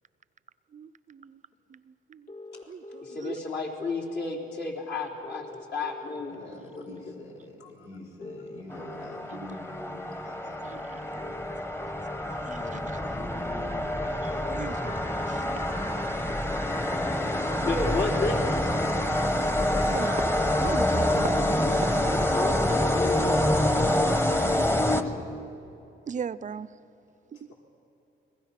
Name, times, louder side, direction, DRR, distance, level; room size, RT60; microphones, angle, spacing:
voice 1, 0.7-1.4 1.7-2.3 2.7-3.4 10.6-11.4 12.2-12.6 12.9-13.0 14.2-16.1 19.8-22.2 24.3-24.5 26.1-26.7 27.3-27.5, right 7 dB, 40° right, 16 dB, 0.6 m, -39 dB
sound 1, 2.3-3.2 5.2-6.2 8.2-9.2 11.2-12.2 14.2-15.2 17.2-18.2, left 2 dB, 45° left, 1.9 m, -43 dB
voice 2, 3.0-5.5 5.7-7.0 12.0-12.5 14.3-14.8 17.7-18.5 21.9-24.1, left 3 dB, 60° left, -1 dB, 4.1 m, -33 dB
voice 3, 6.3-11.3 12.4-14.0 16.8-17.7 22.1-22.5 24.6-25.4 27.3-27.5, left 2 dB, 90° left, 0 dB, 6.3 m, -44 dB
sound 2, 8.7-25.5, left 1 dB, 10° left, 1.2 m, -27 dB
29.5 x 21.5 x 5.9 m, 2.9 s
cardioid pair, 90°, 20 cm